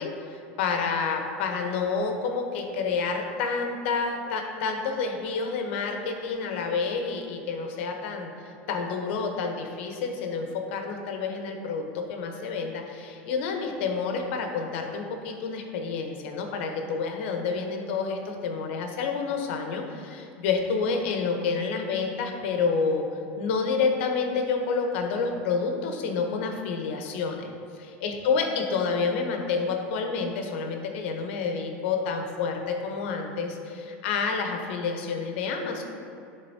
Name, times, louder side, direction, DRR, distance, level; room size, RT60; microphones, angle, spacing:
voice 1, 0.0-23.0 23.4-27.5 28.0-35.8, left 5 dB, 70° left, 3 dB, 0.9 m, -29 dB
11.0 x 3.8 x 2.8 m, 2.6 s
hypercardioid pair, 100°, 6 cm